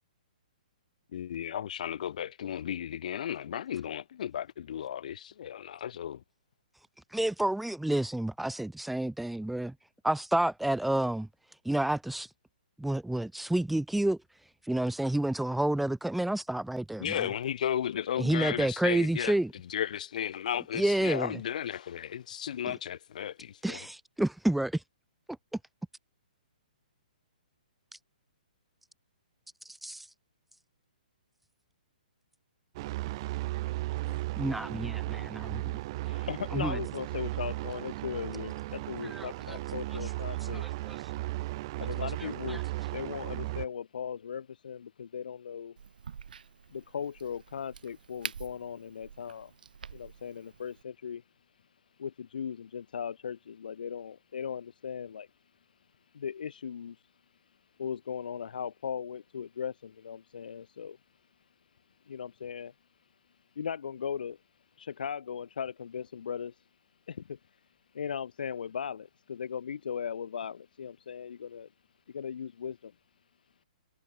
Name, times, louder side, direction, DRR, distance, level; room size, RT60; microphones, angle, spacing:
voice 1, 1.1-6.2 17.0-19.3 19.7-23.8, left 9 dB, 55° left, 4.0 m, -34 dB
voice 2, 7.1-9.7 10.0-11.3 11.6-12.3 12.8-14.2 14.7-17.3 18.2-19.5 20.7-21.4 23.6-24.8 29.8-30.1 34.4-35.8 36.5-36.8 39.1-39.6 40.8-41.0 42.5-42.6, right 1 dB, ahead, 1.2 m, -29 dB
sound 1, 32.7-43.6, right 19 dB, 35° right, 0.5 m, -35 dB
voice 3, 36.0-40.6 41.8-42.6 42.9-45.8 46.7-49.5 49.9-51.2 52.0-55.3 56.1-57.0 57.8-61.0 62.1-62.7 63.6-64.4 64.8-66.5 67.1-67.4 67.9-71.7 72.1-72.9, left 7 dB, 75° left, 1.0 m, -38 dB
Crack, 45.8-50.8, right 7 dB, 75° right, 6.3 m, -46 dB
hypercardioid pair, 155°, 5 cm